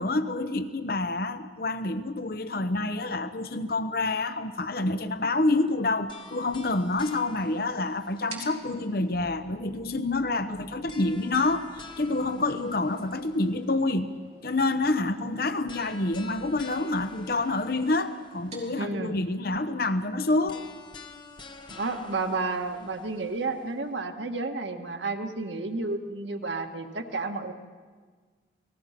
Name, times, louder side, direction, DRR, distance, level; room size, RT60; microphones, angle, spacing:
voice 1, 0.0-14.1 14.4-20.6, left 2 dB, 55° left, 10 dB, 0.9 m, -27 dB
sound 1, 6.1-9.2 10.9-13.9 15.7-18.8 20.5-23.9, left 4 dB, 25° left, 1.4 m, -49 dB
sound 2, 6.8-21.1, right 4 dB, 35° right, 3.9 m, -54 dB
sound 3, 9.1-17.7, equal, 70° right, 6.4 m, -57 dB
voice 2, 18.8-19.2 21.7-27.5, right 3 dB, 90° right, 4 dB, 1.7 m, -31 dB
29.5 x 19.5 x 5.9 m, 1.5 s
head